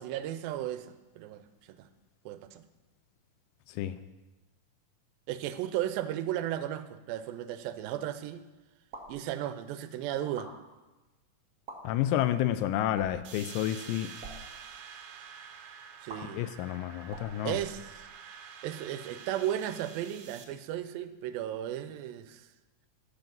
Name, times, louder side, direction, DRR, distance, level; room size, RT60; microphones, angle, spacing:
voice 1, 0.0-1.4 1.8-1.9 2.3-2.6 5.3-8.4 9.1-10.5 16.0-16.4 17.4-18.1 18.6-22.5, right 12 dB, 85° right, 11 dB, 2.4 m, -35 dB
voice 2, 3.7-4.0 11.8-14.1 16.3-17.6, left 12 dB, 85° left, 12 dB, 2.2 m, -30 dB
sound 1, 8.8-9.2 10.2-10.5 11.5-11.8 12.9-13.3 14.1-14.4 16.1-16.2 17.0-18.2, right 3 dB, 40° right, 1.3 m, -46 dB
sound 2, 13.2-20.4, right 7 dB, 70° right, 1.9 m, -48 dB
13.0 x 5.9 x 5.3 m, 1.1 s
omnidirectional pair, 4.0 m